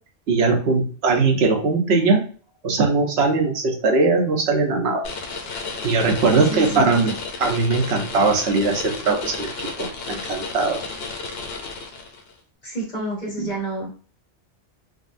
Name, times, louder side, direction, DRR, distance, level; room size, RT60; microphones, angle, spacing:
voice 1, 0.3-2.2 2.6-5.1 5.8-7.1 7.4-9.5 9.8-10.8 13.4-13.5, right 3 dB, 75° right, 2 dB, 1.0 m, -20 dB
sound 1, 5.0-12.3, left 4 dB, 70° left, 0.9 m, -32 dB
voice 2, 6.3-6.9 12.6-13.9, right 1 dB, 45° left, -3 dB, 1.6 m, -29 dB
3.6 x 2.3 x 2.5 m, 0.41 s
omnidirectional pair, 1.1 m